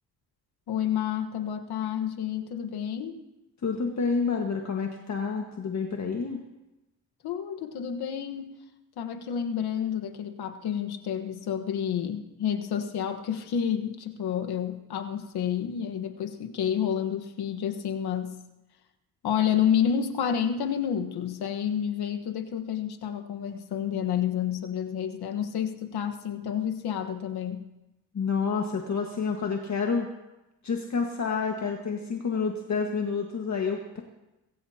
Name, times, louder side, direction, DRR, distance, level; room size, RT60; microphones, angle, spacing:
voice 1, 0.7-3.2 7.2-8.6 9.0-18.4 19.2-27.6, left 8 dB, 70° left, 5 dB, 1.5 m, -29 dB
voice 2, 3.6-6.4 28.1-30.1 30.6-34.0, left 5 dB, 45° left, 2 dB, 1.8 m, -29 dB
22.0 x 16.5 x 2.9 m, 0.99 s
cardioid pair, 80°, 39 cm